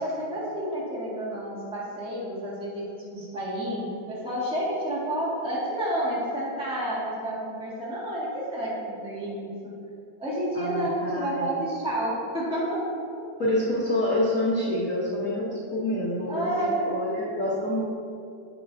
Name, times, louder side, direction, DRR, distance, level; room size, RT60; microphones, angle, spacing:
voice 1, 0.0-2.8 3.1-9.7 10.2-12.8 16.3-16.9, right 1 dB, 5° right, -6 dB, 1.1 m, -30 dB
voice 2, 10.5-11.5 13.4-17.8, left 1 dB, 70° left, -9 dB, 0.7 m, -27 dB
16.0 x 5.4 x 2.7 m, 2.6 s
omnidirectional pair, 3.5 m